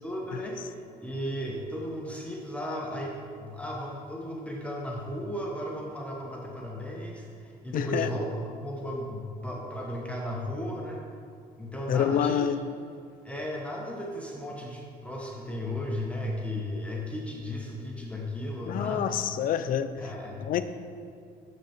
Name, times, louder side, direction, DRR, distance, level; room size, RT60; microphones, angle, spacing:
voice 1, 0.0-11.0 11.6-12.5 13.2-19.2 20.0-20.6, equal, 5° left, -2 dB, 1.0 m, -35 dB
voice 2, 7.7-8.1 11.9-12.6 18.7-19.9 20.4-20.6, left 9 dB, 55° left, 11 dB, 0.4 m, -27 dB
7.0 x 6.2 x 4.4 m, 2.3 s
cardioid pair, 110°, 17 cm